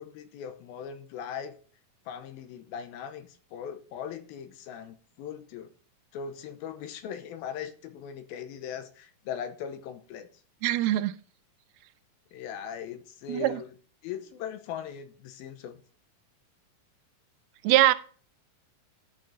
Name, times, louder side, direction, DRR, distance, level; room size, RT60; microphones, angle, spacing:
voice 1, 0.0-1.6 2.1-5.7 6.1-10.3 12.3-13.7 14.0-15.8, left 8 dB, 80° left, 2.6 m, -39 dB
voice 2, 10.6-11.1 13.3-13.6 17.6-17.9, right 14 dB, 85° right, 2.5 m, -22 dB
11.5 x 5.3 x 3.9 m
omnidirectional pair, 4.4 m